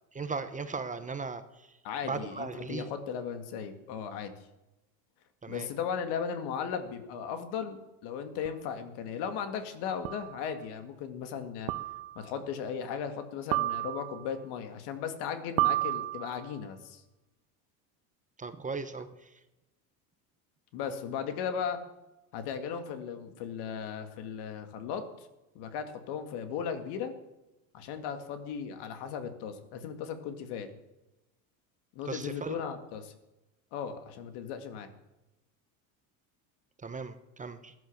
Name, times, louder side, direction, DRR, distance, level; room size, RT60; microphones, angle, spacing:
voice 1, 0.1-1.8 2.0-2.9 5.4-5.7 18.4-19.4 32.0-32.6 36.8-37.7, right 4 dB, 20° right, 10 dB, 1.0 m, -37 dB
voice 2, 1.8-4.3 5.5-11.7 12.2-17.0 20.7-21.8 22.3-25.0 25.6-27.1 27.7-30.7 32.0-33.1 33.7-34.9, left 7 dB, 65° left, 8 dB, 2.2 m, -36 dB
sound 1, 8.4-8.5 10.0-10.4 11.7-12.2 13.5-14.3 15.6-16.5, right 17 dB, 80° right, 1.0 m, -31 dB
14.5 x 11.0 x 7.4 m, 0.99 s
supercardioid pair, 110°, 42 cm